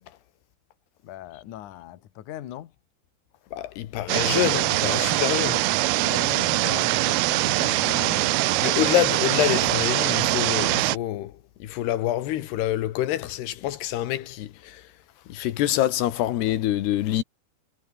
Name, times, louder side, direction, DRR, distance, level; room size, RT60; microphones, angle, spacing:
voice 1, 1.0-2.7 6.0-8.3, left 12 dB, 60° left, 2.6 m, -39 dB
voice 2, 3.5-5.7 8.6-11.3 11.6-14.8 15.3-17.2, left 13 dB, 85° left, 3.4 m, -26 dB
sound 1, 4.1-11.0, right 19 dB, 80° right, 2.6 m, -23 dB
omnidirectional pair, 4.7 m